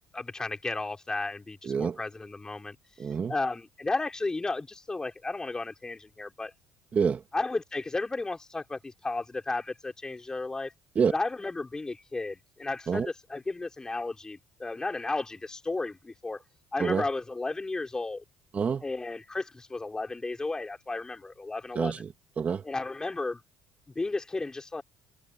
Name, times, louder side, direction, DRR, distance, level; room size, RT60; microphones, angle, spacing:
voice 1, 0.1-2.8 3.3-6.5 7.3-10.7 11.1-16.4 16.7-18.2 18.8-21.9 22.7-23.4 24.0-24.8, left 3 dB, 15° left, 5.2 m, -33 dB
voice 2, 1.6-2.0 3.0-3.3 6.9-7.2 10.9-11.1 12.9-13.1 16.8-17.0 18.5-18.8 21.7-22.6, right 6 dB, 35° right, 2.8 m, -27 dB
supercardioid pair, 95°, 4 cm